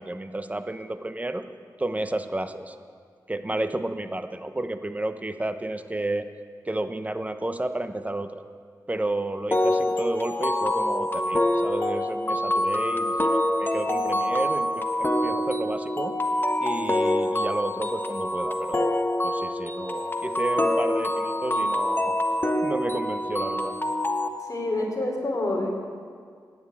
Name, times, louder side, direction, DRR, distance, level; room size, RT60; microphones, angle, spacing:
voice 1, 0.0-1.4 1.8-2.8 3.3-6.3 6.7-8.4 8.9-16.2 16.6-22.2 22.6-23.8, right 1 dB, 20° right, 9 dB, 1.1 m, -31 dB
sound 1, 9.5-24.3, left 1 dB, 30° left, 1.3 m, -26 dB
voice 2, 24.5-25.7, left 2 dB, 45° left, 1 dB, 4.0 m, -27 dB
16.0 x 10.0 x 8.6 m, 2.1 s
cardioid pair, 55°, 8 cm